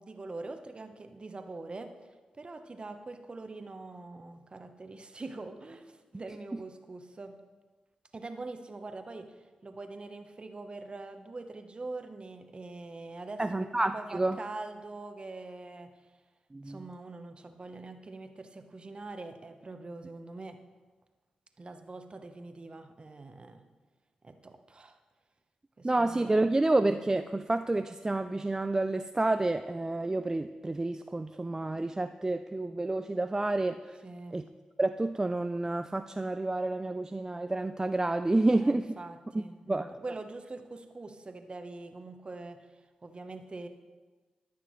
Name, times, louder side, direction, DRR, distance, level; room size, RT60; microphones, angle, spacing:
voice 1, 0.0-1.9 2.3-7.4 8.1-13.7 13.9-15.9 16.6-20.6 21.6-23.6 24.2-25.0 25.8-26.4 34.0-34.4 38.5-43.7, right 3 dB, 40° right, 7 dB, 0.9 m, -44 dB
voice 2, 13.4-14.4 16.5-16.8 25.8-34.0 34.3-34.4 34.8-38.9 39.3-39.9, right 2 dB, 20° right, 9 dB, 0.3 m, -29 dB
13.0 x 6.0 x 3.1 m, 1.3 s
supercardioid pair, 45°, 3 cm